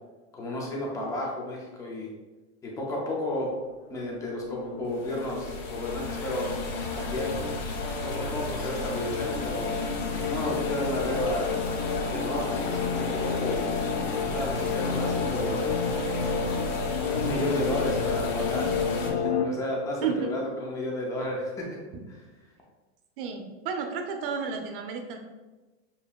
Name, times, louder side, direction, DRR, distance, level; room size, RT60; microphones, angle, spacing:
voice 1, 0.3-2.1 2.6-3.5 3.9-6.6 6.9-7.5 8.0-9.7 10.3-11.6 12.1-13.6 14.3-15.7 17.1-21.8 22.1-22.2, left 1 dB, 10° left, -2 dB, 0.4 m, -32 dB
sound 1, 3.8-19.5, left 5 dB, 90° left, 0.6 m, -31 dB
sound 2, 4.9-19.1, left 1 dB, 30° left, 1.4 m, -36 dB
voice 2, 23.2-25.2, right 6 dB, 55° right, 4 dB, 0.7 m, -31 dB
6.7 x 2.7 x 2.3 m, 1.2 s
supercardioid pair, 165°, 33 cm